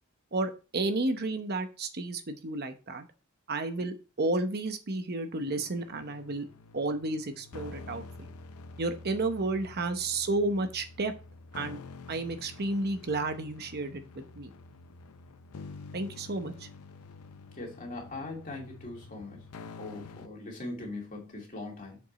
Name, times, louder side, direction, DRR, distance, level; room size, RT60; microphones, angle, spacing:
voice 1, 0.3-3.1 3.5-6.5 6.7-8.3 8.8-11.1 11.5-11.8 12.1-14.5 15.9-16.7, right 2 dB, 45° right, 0.9 m, -32 dB
sound 1, 5.5-20.3, left 3 dB, 80° left, 0.6 m, -48 dB
voice 2, 17.5-19.5 19.8-22.0, left 2 dB, 40° left, 2.6 m, -40 dB
7.1 x 5.2 x 4.2 m
head